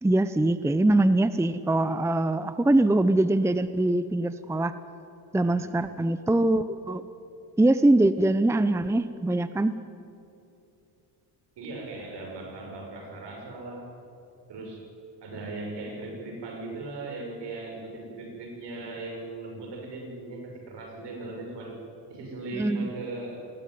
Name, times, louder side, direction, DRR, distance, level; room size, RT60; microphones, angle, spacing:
voice 1, 0.0-4.7 5.3-7.0 7.6-9.8 22.5-22.9, right 2 dB, 5° right, 12 dB, 0.7 m, -23 dB
voice 2, 5.4-5.7 11.6-13.9 14.5-14.8 15.2-21.7 22.1-23.5, right 2 dB, 65° right, 1 dB, 6.5 m, -38 dB
20.0 x 17.5 x 9.4 m, 2.7 s
cardioid pair, 85°, 44 cm